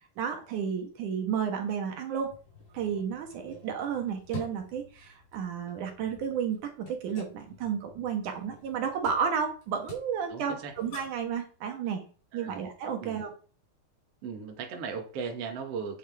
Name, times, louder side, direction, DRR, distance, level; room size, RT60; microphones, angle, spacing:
voice 1, 0.2-2.3 2.7-12.0 12.3-13.3, right 7 dB, 75° right, 4 dB, 2.9 m, -32 dB
sound 1, 2.2-11.3, left 3 dB, 50° left, 3.8 m, -49 dB
voice 2, 10.3-10.7 12.3-12.6 13.0-13.2 14.2-16.0, right 6 dB, 55° right, 4 dB, 2.6 m, -37 dB
9.3 x 6.5 x 4.8 m, 0.37 s
omnidirectional pair, 3.6 m